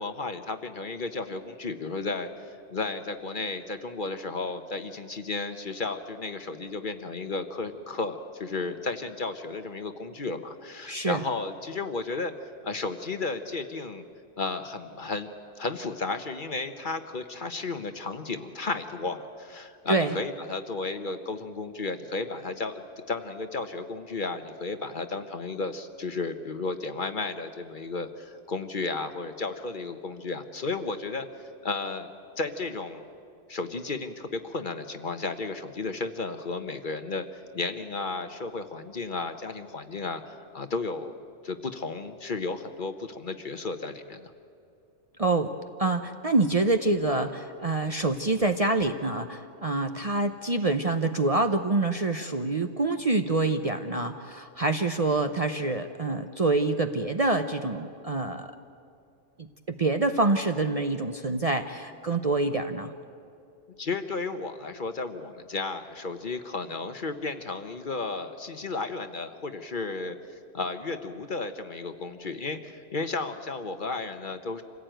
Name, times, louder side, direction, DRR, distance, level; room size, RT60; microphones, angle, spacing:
voice 1, 0.0-12.3 12.6-14.1 14.4-15.3 15.6-22.8 23.1-31.3 31.6-32.1 32.4-33.0 33.5-37.3 37.5-41.1 41.4-44.3 63.8-74.6, left 3 dB, 45° left, 9 dB, 1.1 m, -33 dB
voice 2, 10.9-11.2 19.9-20.2 45.2-45.5 45.8-58.5 59.4-59.5 59.8-62.9, right 2 dB, 35° right, 7 dB, 0.7 m, -26 dB
26.0 x 16.5 x 9.1 m, 2.5 s
omnidirectional pair, 1.3 m